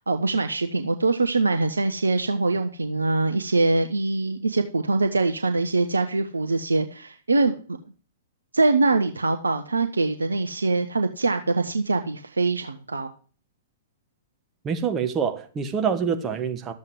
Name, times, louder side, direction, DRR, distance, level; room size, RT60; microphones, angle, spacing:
voice 1, 0.0-7.8 8.5-13.1, right 3 dB, 80° right, 0.8 m, -23 dB
voice 2, 14.6-16.7, right 6 dB, 20° right, 1.3 m, -26 dB
13.0 x 7.6 x 4.8 m
figure-of-eight pair, 110°, 0 cm